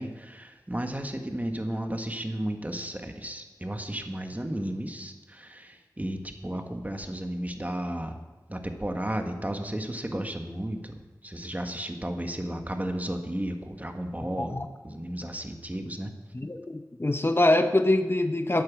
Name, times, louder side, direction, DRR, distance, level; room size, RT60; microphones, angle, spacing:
voice 1, 0.0-8.2 8.5-16.1, right 1 dB, 20° right, 5 dB, 1.5 m, -33 dB
voice 2, 16.3-18.6, left 1 dB, 35° left, 7 dB, 0.7 m, -24 dB
10.5 x 9.1 x 7.3 m, 1.2 s
wide cardioid pair, 45°, 7 cm